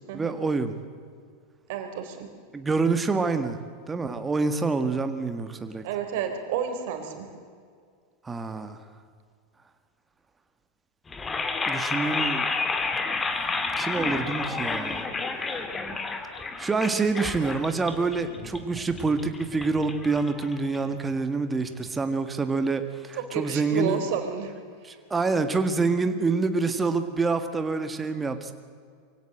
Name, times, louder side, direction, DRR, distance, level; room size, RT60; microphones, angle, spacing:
voice 1, 0.1-0.7 2.5-3.6 3.9-5.8 8.2-8.8 11.7-12.5 13.8-15.1 16.6-24.0 24.8-28.5, right 4 dB, 15° right, 8 dB, 1.7 m, -27 dB
voice 2, 1.7-2.3 5.8-7.3 23.3-24.5, right 8 dB, 65° right, 6 dB, 3.7 m, -30 dB
sound 1, 11.1-21.1, left 4 dB, 20° left, 2.4 m, -31 dB
23.5 x 16.5 x 7.9 m, 2.1 s
hypercardioid pair, 95°, 0 cm